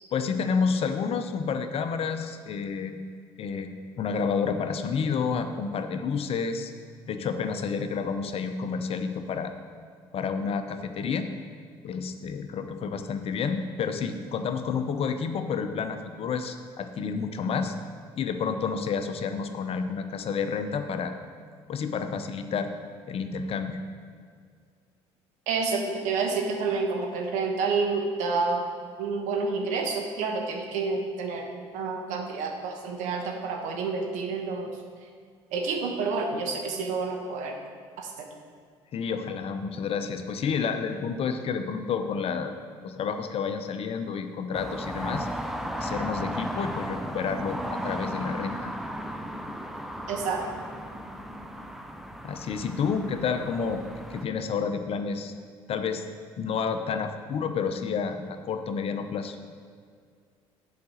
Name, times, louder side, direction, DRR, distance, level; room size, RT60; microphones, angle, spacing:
voice 1, 0.1-2.9 3.4-3.7 4.0-6.7 7.1-9.5 10.1-11.3 11.8-17.8 18.2-21.1 21.7-22.7 23.1-23.8 38.9-42.5 42.8-45.3 45.7-48.7 52.2-53.8 54.1-55.3 55.7-56.0 56.4-59.4, left 5 dB, 50° left, 8 dB, 0.7 m, -30 dB
voice 2, 25.5-28.6 29.0-31.5 31.7-34.7 35.5-37.6 38.0-38.3 50.1-50.4, right 4 dB, 70° right, 2 dB, 1.2 m, -29 dB
sound 1, 44.5-54.3, equal, ahead, 0.6 m, -35 dB
7.0 x 5.0 x 6.4 m, 2.1 s
hypercardioid pair, 70°, 13 cm